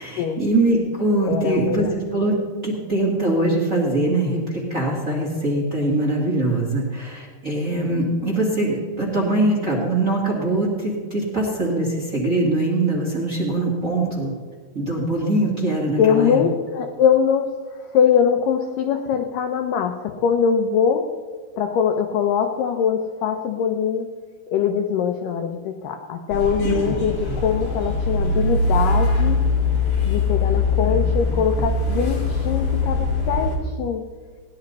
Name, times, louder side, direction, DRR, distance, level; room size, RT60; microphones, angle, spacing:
voice 1, 0.0-2.3 2.6-14.3 14.7-16.4 26.6-26.9 27.3-27.4 30.9-31.3, right 2 dB, 30° right, -3 dB, 1.7 m, -22 dB
voice 2, 1.2-1.9 16.0-17.5 17.9-21.0 21.6-24.1 24.5-29.4 30.1-34.0, left 7 dB, 80° left, 5 dB, 1.9 m, -22 dB
sound 1, 26.3-33.6, left 3 dB, 40° left, 3.1 m, -22 dB
19.0 x 11.0 x 4.2 m, 1.5 s
omnidirectional pair, 4.7 m